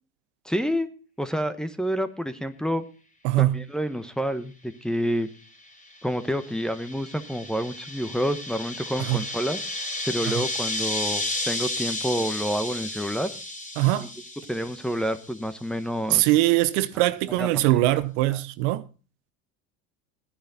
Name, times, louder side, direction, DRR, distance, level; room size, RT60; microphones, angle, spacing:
voice 1, 0.4-0.9 1.2-2.8 3.4-5.3 6.0-9.6 10.1-13.3 14.5-16.3 17.4-18.0, equal, ahead, 1.2 m, -28 dB
voice 2, 3.2-3.6 9.0-9.2 10.3-10.4 13.8-14.1 16.1-18.8, right 17 dB, 70° right, 1.0 m, -22 dB
sound 1, 5.7-15.5, left 1 dB, 20° left, 3.7 m, -33 dB
14.5 x 10.0 x 4.1 m
hypercardioid pair, 95°, 37 cm